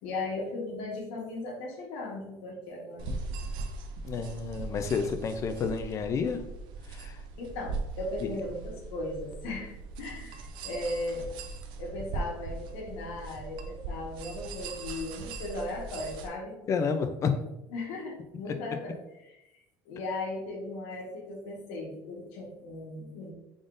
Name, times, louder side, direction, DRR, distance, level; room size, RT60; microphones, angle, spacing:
voice 1, 0.0-3.2 7.4-11.3 11.8-16.6 17.7-19.0 19.3-19.6 19.8-23.3, left 2 dB, 75° left, -2 dB, 1.2 m, -37 dB
sound 1, 3.0-16.3, right 3 dB, 65° right, 0.5 m, -39 dB
voice 2, 4.0-6.4 6.9-7.2 8.2-8.3 16.7-17.3, left 5 dB, 35° left, 8 dB, 0.4 m, -30 dB
3.7 x 3.7 x 2.5 m, 0.90 s
cardioid pair, 130°, 9 cm